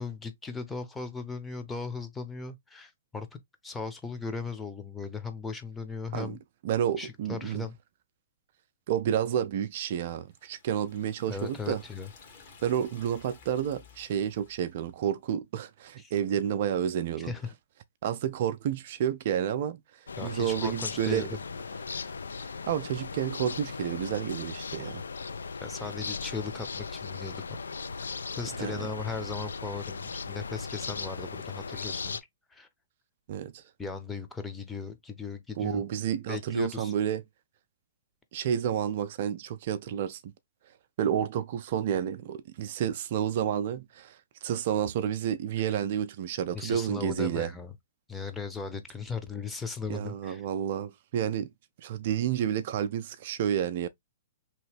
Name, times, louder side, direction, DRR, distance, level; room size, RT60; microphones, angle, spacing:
voice 1, 0.0-6.4 7.0-7.8 11.3-12.1 16.0-16.1 17.2-17.5 20.2-21.4 25.6-27.4 28.4-32.2 32.5-32.7 33.8-35.8 36.3-36.9 45.6-45.8 46.5-47.7 48.1-50.4, left 4 dB, 10° left, 0.7 m, -37 dB
voice 2, 6.6-7.6 8.9-11.8 12.6-17.3 18.0-19.8 20.2-21.3 22.7-25.0 28.6-28.9 33.3-33.6 35.6-37.2 38.3-40.3 41.0-47.5 49.9-51.5 51.8-53.9, right 9 dB, 50° right, 0.4 m, -30 dB
Liquid, 10.2-14.9, left 5 dB, 50° left, 1.3 m, -55 dB
sound 1, 20.1-32.2, left 4 dB, 80° left, 0.3 m, -38 dB
2.9 x 2.6 x 3.2 m
hypercardioid pair, 120°, 0 cm